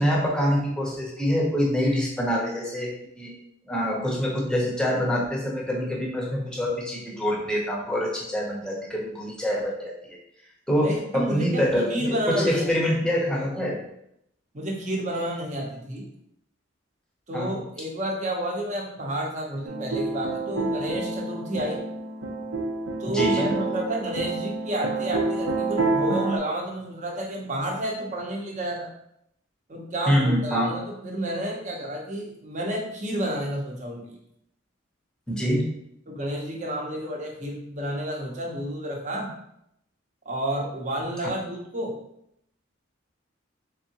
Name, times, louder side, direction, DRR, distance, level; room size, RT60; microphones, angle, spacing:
voice 1, 0.0-3.3 3.7-10.2 10.7-13.8 17.3-17.5 23.1-23.6 30.1-30.7 35.3-35.8 41.2-41.3, equal, 5° left, -2 dB, 0.7 m, -25 dB
voice 2, 10.8-11.6 11.9-12.6 14.5-16.1 17.3-21.8 23.0-28.9 29.7-34.1 36.1-39.3 40.3-41.9, right 1 dB, 35° right, -1 dB, 0.8 m, -30 dB
sound 1, 19.7-26.4, right 3 dB, 80° right, 0.7 m, -28 dB
3.7 x 3.5 x 2.9 m, 0.76 s
head